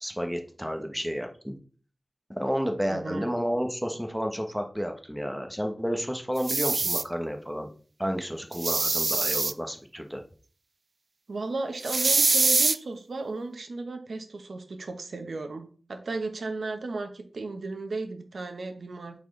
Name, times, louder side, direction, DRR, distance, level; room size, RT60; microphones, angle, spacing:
voice 1, 0.0-1.6 2.3-7.7 8.0-10.2, equal, ahead, 4 dB, 1.1 m, -31 dB
voice 2, 2.9-3.3 11.3-19.2, right 3 dB, 75° right, 6 dB, 1.0 m, -35 dB
sound 1, 6.4-7.0 8.5-9.5 11.8-12.8, right 3 dB, 55° right, 0.4 m, -24 dB
8.4 x 4.4 x 3.3 m, 0.41 s
wide cardioid pair, 95°, 0 cm